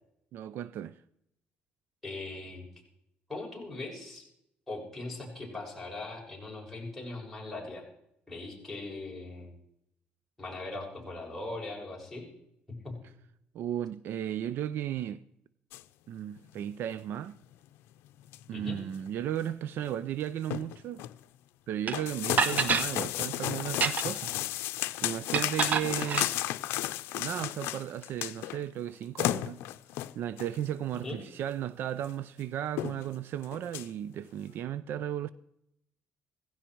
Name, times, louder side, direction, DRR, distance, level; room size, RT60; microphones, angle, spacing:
voice 1, 0.3-0.9 13.5-15.2 16.1-17.4 18.5-21.0 21.7-24.3 24.6-26.3 27.1-29.6 30.2-35.3, right 10 dB, 65° right, 0.5 m, -35 dB
voice 2, 2.0-2.7 3.3-4.3 4.7-7.8 8.3-9.5 10.4-12.3 12.7-13.0 18.5-18.8 31.0-31.2, left 2 dB, 5° left, 6.8 m, -40 dB
sound 1, 15.7-15.8 16.4-16.5 16.8-16.9 17.5-17.6 18.0-18.5 18.9-19.1 19.3-19.4 19.8-19.9 20.2-21.2 21.9-28.6 28.9-29.0 29.2-30.6 31.4-31.5 32.0-32.1 32.4-32.5 32.8-33.1 33.4-33.9, left 15 dB, 85° left, 0.6 m, -33 dB
sound 2, 21.9-22.0 22.4-22.9 23.7-24.2 25.3-26.3, right 6 dB, 45° right, 1.0 m, -28 dB
17.0 x 16.0 x 4.6 m
cardioid pair, 115°, 4 cm